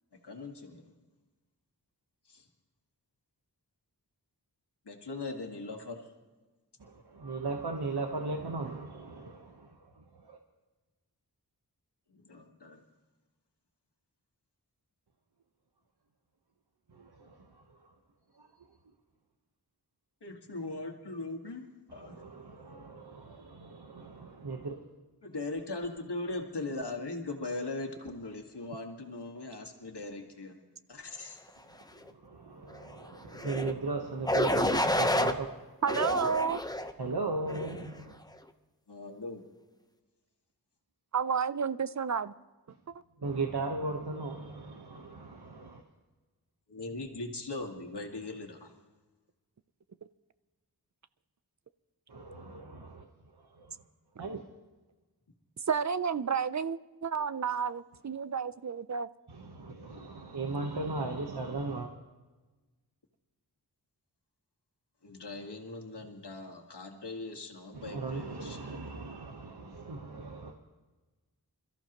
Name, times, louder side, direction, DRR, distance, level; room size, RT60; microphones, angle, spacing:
voice 1, 0.2-0.9 2.3-2.5 4.9-6.1 12.1-12.8 20.2-22.2 25.2-30.6 30.9-31.4 38.9-39.4 46.7-48.7 65.0-68.8, left 2 dB, 80° left, 1.8 m, -40 dB
voice 2, 6.8-10.4 16.9-17.8 18.4-18.5 21.9-24.8 31.9-35.5 37.0-38.2 43.2-45.8 52.1-53.0 53.4-53.8 54.2-54.4 59.3-61.9 67.7-70.5, right 3 dB, 70° right, 1.2 m, -37 dB
sound 1, 33.3-33.7 34.3-35.3 35.9-36.9 37.5-37.9, left 1 dB, 10° left, 0.9 m, -29 dB
voice 3, 35.8-36.6 41.1-42.3 55.7-59.1, right 6 dB, 45° right, 0.6 m, -31 dB
27.5 x 14.0 x 3.0 m
wide cardioid pair, 65°, 40 cm